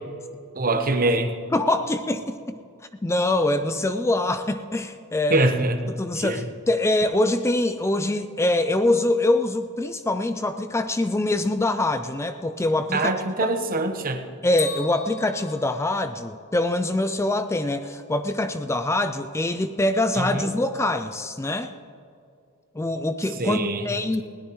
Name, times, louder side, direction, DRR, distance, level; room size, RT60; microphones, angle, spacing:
voice 1, 0.5-1.3 5.3-5.9 6.2-6.4 12.9-14.2 20.1-20.5 23.4-23.9, right 2 dB, 40° right, 6 dB, 1.1 m, -23 dB
voice 2, 1.5-2.6 3.0-5.5 5.9-13.1 13.4-13.5 14.4-21.7 22.7-24.2, left 2 dB, 10° left, 9 dB, 0.4 m, -24 dB
Bell, 14.6-16.6, left 6 dB, 70° left, 4.1 m, -37 dB
20.5 x 17.5 x 3.1 m, 2.4 s
head